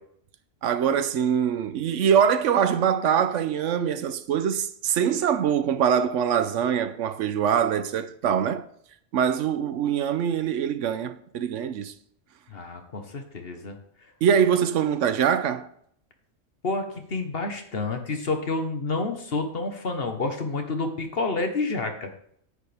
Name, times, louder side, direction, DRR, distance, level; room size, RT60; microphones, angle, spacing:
voice 1, 0.6-8.7 9.1-11.9 14.2-15.7, right 8 dB, 70° right, 1.0 m, -23 dB
voice 2, 12.5-13.8 16.6-22.1, left 3 dB, 50° left, 1.3 m, -29 dB
9.7 x 8.3 x 3.4 m
omnidirectional pair, 1.3 m